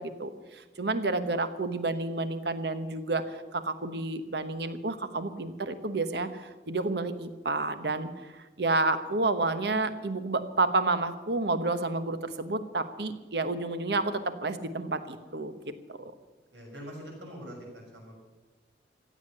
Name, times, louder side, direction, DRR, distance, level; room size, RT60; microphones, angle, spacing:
voice 1, 0.0-15.5 15.9-16.1, right 3 dB, 65° right, 10 dB, 1.1 m, -30 dB
voice 2, 16.5-18.2, equal, 80° right, -1 dB, 6.4 m, -44 dB
15.5 x 8.6 x 9.9 m, 1.2 s
head